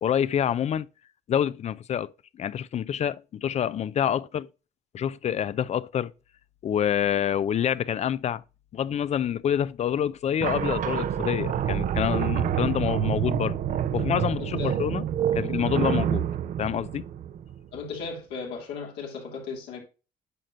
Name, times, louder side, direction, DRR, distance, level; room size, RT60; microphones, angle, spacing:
voice 1, 0.0-0.9 1.3-2.1 2.4-4.5 4.9-6.1 6.6-8.4 8.7-13.6 13.9-15.0 15.3-16.2 16.6-17.0, left 9 dB, 40° left, 0.4 m, -27 dB
sound 1, 10.4-17.8, right 9 dB, 50° right, 0.6 m, -27 dB
voice 2, 14.4-14.7 17.7-19.8, left 5 dB, 85° left, 2.9 m, -36 dB
9.1 x 6.0 x 2.5 m
cardioid pair, 110°, 17 cm